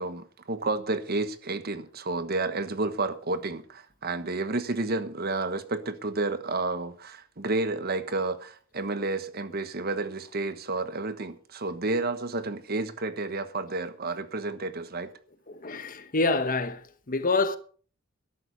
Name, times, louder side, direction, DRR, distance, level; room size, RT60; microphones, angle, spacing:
voice 1, 0.0-15.1, right 2 dB, 50° right, 1.2 m, -31 dB
voice 2, 15.5-16.8 17.1-17.6, left 3 dB, 45° left, 1.1 m, -26 dB
13.0 x 11.0 x 5.4 m
head